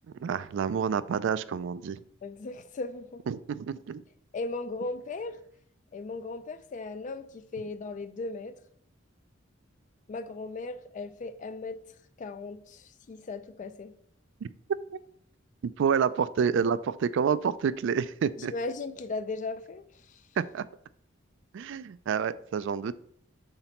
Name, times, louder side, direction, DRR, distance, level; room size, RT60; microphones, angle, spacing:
voice 1, 0.2-2.0 3.3-4.0 14.4-14.5 15.6-18.5 20.4-20.6 21.5-22.9, right 7 dB, 65° right, 0.3 m, -28 dB
voice 2, 2.2-3.2 4.3-5.4 5.9-8.6 10.1-11.8 12.2-13.9 18.4-20.2, left 3 dB, 40° left, 0.3 m, -37 dB
5.8 x 3.9 x 4.3 m
head